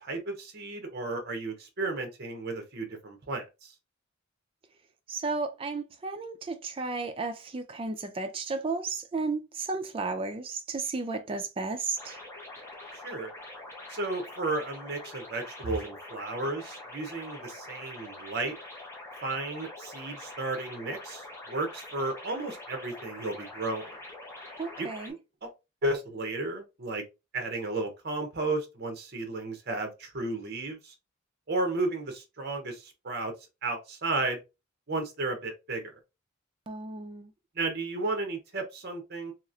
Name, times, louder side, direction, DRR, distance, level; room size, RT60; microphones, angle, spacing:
voice 1, 0.0-3.7 12.9-13.3 13.9-18.5 19.2-24.0 24.8-24.9 25.4-25.5 25.8-27.0 27.3-30.9 31.5-33.3 33.6-34.4 34.9-35.9 37.5-39.3, right 2 dB, 50° right, 0.7 m, -33 dB
voice 2, 5.1-12.2 24.6-25.2 36.7-37.3, right 3 dB, 25° right, 0.3 m, -33 dB
sound 1, 12.0-25.1, left 2 dB, 15° left, 0.7 m, -45 dB
2.9 x 2.4 x 2.4 m
head